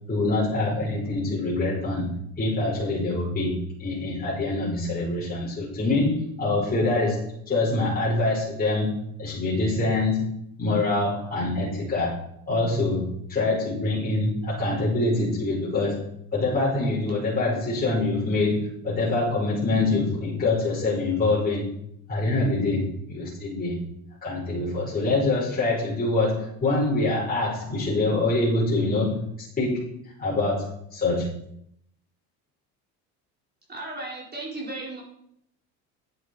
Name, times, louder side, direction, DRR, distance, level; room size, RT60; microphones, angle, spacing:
voice 1, 0.1-10.3 10.6-16.0 16.3-21.7 22.1-23.8 24.2-29.9 30.2-31.3, left 2 dB, 25° left, -7 dB, 5.4 m, -25 dB
voice 2, 33.7-35.0, right 2 dB, 25° right, -2 dB, 4.3 m, -35 dB
10.5 x 9.8 x 4.9 m, 0.73 s
supercardioid pair, 105°, 37 cm